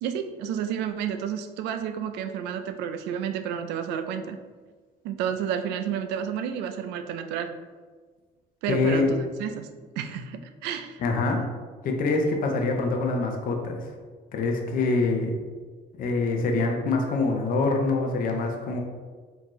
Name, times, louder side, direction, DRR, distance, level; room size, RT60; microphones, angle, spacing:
voice 1, 0.0-4.4 5.0-7.5 8.6-9.7 10.0-11.0, right 8 dB, 90° right, 8 dB, 0.4 m, -31 dB
voice 2, 8.7-9.1 11.0-11.4 11.8-13.9 14.3-15.3 16.0-18.8, left 3 dB, 55° left, 3 dB, 0.6 m, -25 dB
4.4 x 2.9 x 3.0 m, 1.5 s
cardioid pair, 110°, 17 cm